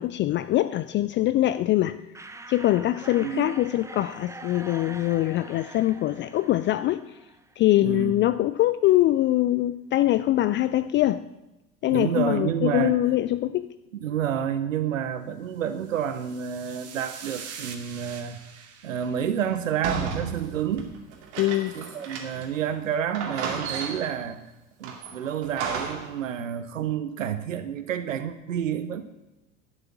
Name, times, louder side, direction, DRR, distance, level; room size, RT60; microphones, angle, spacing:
voice 1, 0.0-2.0 2.5-7.0 7.6-11.2 11.8-13.7 21.4-21.7, left 15 dB, 30° left, 0.4 m, -23 dB
sound 1, 2.1-7.7, right 2 dB, 10° right, 0.9 m, -44 dB
voice 2, 3.2-3.5 7.8-8.1 11.9-13.0 13.9-18.4 18.8-20.9 21.7-24.4 24.8-29.0, right 9 dB, 80° right, 0.8 m, -29 dB
sound 2, 15.7-20.2, right 7 dB, 40° right, 1.8 m, -44 dB
sound 3, 19.8-22.6 22.8-22.9 23.1-24.2 24.8-26.2, right 5 dB, 60° right, 2.4 m, -33 dB
11.5 x 8.1 x 7.3 m
figure-of-eight pair, 70°, 38 cm